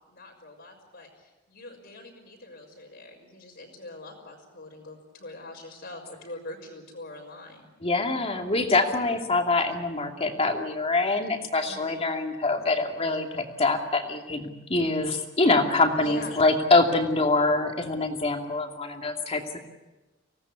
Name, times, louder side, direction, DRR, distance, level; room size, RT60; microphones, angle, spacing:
voice 1, 0.0-7.7 11.7-12.1 16.0-16.4, left 2 dB, 60° left, -4 dB, 4.7 m, -43 dB
voice 2, 7.8-19.6, left 3 dB, 30° left, 3 dB, 2.6 m, -25 dB
25.0 x 18.0 x 8.4 m, 1.1 s
head